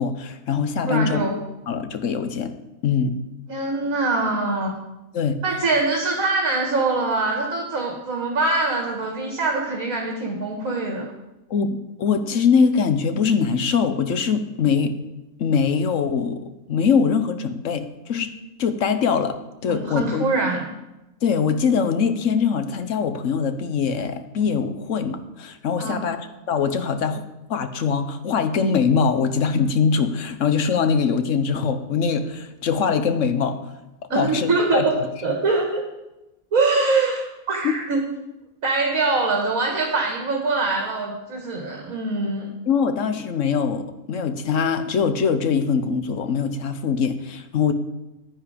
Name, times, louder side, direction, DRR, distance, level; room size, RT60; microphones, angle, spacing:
voice 1, 0.0-1.2 1.7-2.5 2.8-3.2 5.1-5.4 11.5-15.0 15.4-16.4 16.7-18.3 18.6-19.4 19.6-20.3 21.2-27.2 27.5-33.6 34.1-34.8 37.6-37.8 42.7-47.7, left 6 dB, 60° left, 10 dB, 1.2 m, -22 dB
voice 2, 0.9-1.4 3.5-4.7 5.4-11.1 19.7-20.7 25.8-26.1 34.1-34.9 35.2-35.8 36.5-38.0 38.6-42.5, right 3 dB, 65° right, 0 dB, 2.1 m, -23 dB
10.5 x 9.9 x 5.1 m, 0.97 s
omnidirectional pair, 1.5 m